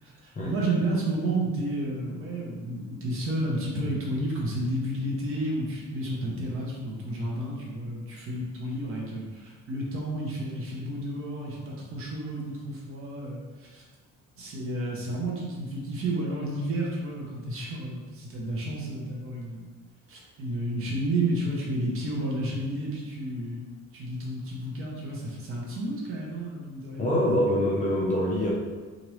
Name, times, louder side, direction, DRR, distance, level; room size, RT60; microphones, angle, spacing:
voice 1, 0.0-13.8 14.4-19.7 20.1-23.6 23.9-27.3, right 1 dB, 45° right, -3 dB, 0.7 m, -31 dB
voice 2, 27.0-28.5, left 1 dB, 25° left, -4 dB, 0.4 m, -24 dB
3.0 x 2.5 x 3.0 m, 1.4 s
cardioid pair, 170°, 30 cm